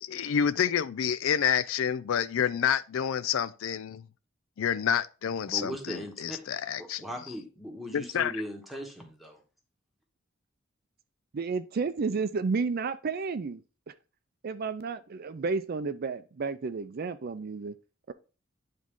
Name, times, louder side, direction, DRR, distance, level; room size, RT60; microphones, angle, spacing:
voice 1, 0.0-4.0 4.6-7.0 7.9-8.3, left 8 dB, 80° left, 0.4 m, -28 dB
voice 2, 5.4-6.4 6.8-9.4, equal, ahead, 1.3 m, -39 dB
voice 3, 11.3-13.9 14.4-17.7 18.1-18.2, right 4 dB, 50° right, 0.4 m, -32 dB
9.4 x 3.7 x 3.7 m
head